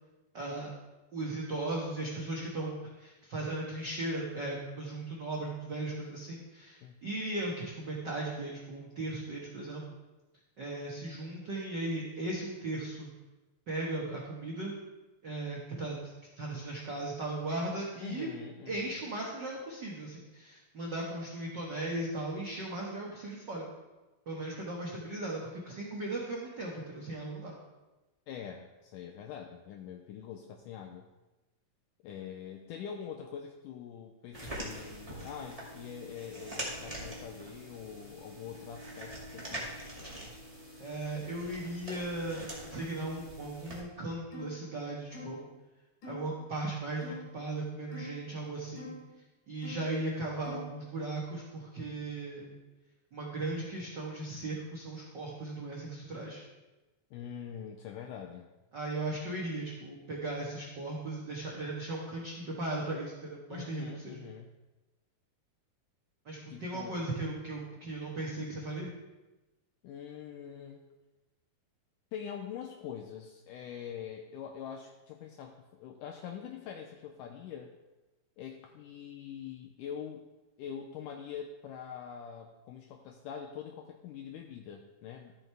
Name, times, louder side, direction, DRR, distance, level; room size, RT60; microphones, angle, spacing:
voice 1, 0.3-0.7 1.1-9.8 10.6-13.1 13.7-14.7 15.2-18.3 18.6-23.7 24.3-27.5 40.8-45.4 46.1-48.9 49.5-52.6 53.1-56.4 58.7-64.2 66.2-68.9, right 2 dB, 80° right, -4 dB, 0.9 m, -37 dB
voice 2, 18.0-19.0 28.3-31.1 32.0-39.7 57.1-58.5 63.5-64.5 66.5-67.1 69.8-70.8 72.1-77.7 78.4-80.2 80.6-85.4, left 8 dB, 85° left, 3 dB, 1.9 m, -44 dB
sound 1, 34.3-43.8, right 1 dB, 15° right, 1.3 m, -44 dB
sound 2, 44.3-44.6 45.1-45.4 46.0-46.2 47.0-47.3 47.9-48.2 48.8-49.0 49.6-49.9 50.4-50.7, left 2 dB, 55° left, 3.6 m, -44 dB
13.5 x 7.8 x 3.4 m, 1.1 s
omnidirectional pair, 4.3 m